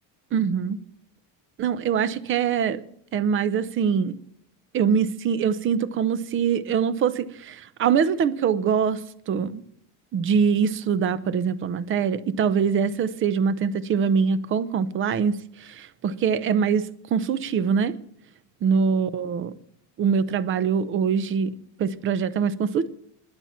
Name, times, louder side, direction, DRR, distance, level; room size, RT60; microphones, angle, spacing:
voice 1, 0.3-0.8 1.6-2.8 3.1-4.2 4.7-9.0 9.3-9.6 10.1-17.9 18.6-19.5 20.0-22.9, right 6 dB, 30° right, 0.7 m, -23 dB
21.5 x 8.7 x 4.4 m
cardioid pair, 180°, 42 cm